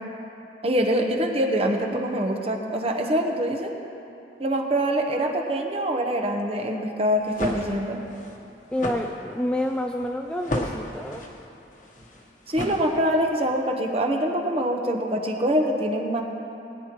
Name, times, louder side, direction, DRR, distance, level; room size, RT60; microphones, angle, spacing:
voice 1, 0.6-3.7 4.4-8.0 12.5-16.2, equal, 35° right, 2 dB, 1.0 m, -24 dB
sound 1, 7.1-13.4, left 1 dB, 45° left, 1.2 m, -34 dB
voice 2, 8.7-11.2, left 1 dB, 5° left, 3 dB, 0.3 m, -28 dB
21.0 x 10.5 x 3.1 m, 2.9 s
head